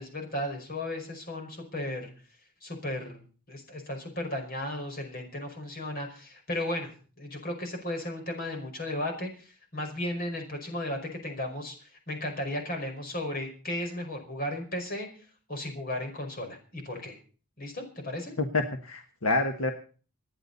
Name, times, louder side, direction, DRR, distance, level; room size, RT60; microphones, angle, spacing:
voice 1, 0.0-2.1 2.6-6.9 7.2-15.1 15.5-17.2 17.6-18.3, left 1 dB, 45° left, 4 dB, 5.3 m, -35 dB
voice 2, 18.4-19.7, left 2 dB, 75° left, 5 dB, 1.5 m, -28 dB
27.0 x 10.0 x 4.1 m, 0.39 s
head